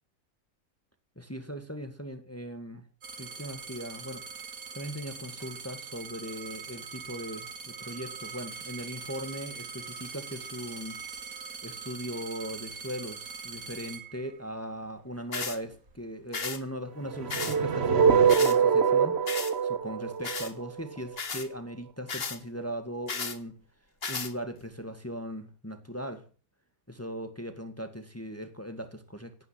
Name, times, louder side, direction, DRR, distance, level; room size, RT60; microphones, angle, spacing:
voice 1, 1.2-2.8 3.2-4.2 4.7-11.1 11.6-19.3 19.6-23.6 24.1-26.3 26.9-29.4, equal, 10° left, 1.9 m, -39 dB
sound 1, 3.0-14.8 15.5-16.0, right 5 dB, 80° right, 2.8 m, -42 dB
sound 2, 15.3-15.6 16.3-16.6 17.3-17.6 18.3-18.6 19.3-19.5 20.2-20.5 21.2-21.5 22.1-22.4 23.1-23.4 24.0-24.3, left 4 dB, 45° left, 1.7 m, -34 dB
sound 3, 17.1-21.2, right 6 dB, 50° right, 1.2 m, -24 dB
17.0 x 9.7 x 7.6 m
omnidirectional pair, 1.5 m